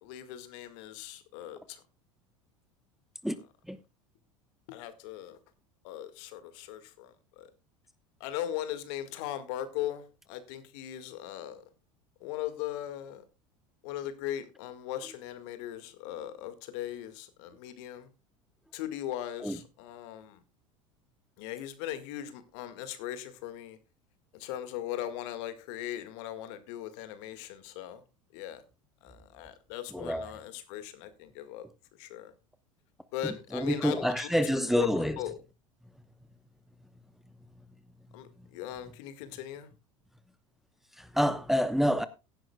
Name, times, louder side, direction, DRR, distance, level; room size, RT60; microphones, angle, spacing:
voice 1, 0.0-1.8 4.7-5.4 5.8-7.5 8.2-11.6 12.2-13.2 13.8-18.1 18.7-20.4 21.4-23.8 24.3-28.0 28.3-28.6 29.0-31.7 32.0-32.3 33.1-34.9 35.2-35.3 38.1-39.7, left 12 dB, 60° left, 1.9 m, -39 dB
voice 2, 29.9-30.4 33.2-35.2 41.0-42.1, equal, ahead, 0.9 m, -28 dB
17.0 x 10.5 x 2.3 m
hypercardioid pair, 75°, 17 cm